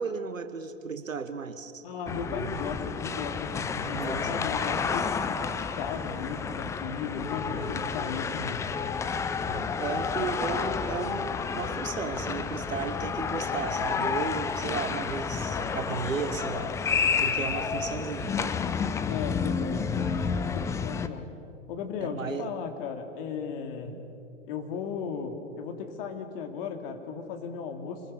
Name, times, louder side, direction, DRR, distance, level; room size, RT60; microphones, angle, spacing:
voice 1, 0.0-1.9 2.3-2.6 3.9-4.3 7.6-7.9 9.5-18.6 22.0-22.5 23.8-24.0, right 5 dB, 80° right, 9 dB, 1.5 m, -35 dB
voice 2, 1.8-5.4 5.7-8.7 10.2-10.3 19.1-21.3 21.7-24.0 24.5-28.0, left 6 dB, 45° left, 5 dB, 2.8 m, -36 dB
sound 1, 2.1-21.1, left 6 dB, 10° left, 0.5 m, -30 dB
27.0 x 21.5 x 6.6 m, 2.6 s
figure-of-eight pair, 105°, 39 cm